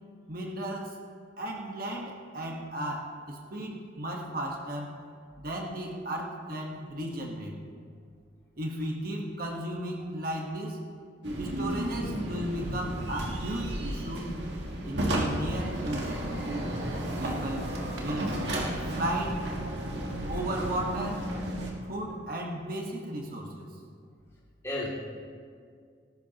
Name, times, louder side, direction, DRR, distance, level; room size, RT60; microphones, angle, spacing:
voice 1, 0.3-1.0 1.4-4.9 5.4-7.6 8.6-10.8 11.4-14.3 14.8-16.3 17.2-17.6 18.0-18.3 18.9-19.4 20.3-21.3 21.8-23.7, right 1 dB, 50° right, 0 dB, 1.3 m, -35 dB
sound 1, 11.2-21.7, right 1 dB, 65° right, 1.7 m, -33 dB
voice 2, 16.9-17.4 24.6-24.9, left 2 dB, 15° left, -7 dB, 2.5 m, -36 dB
18.0 x 14.0 x 2.9 m, 2.1 s
head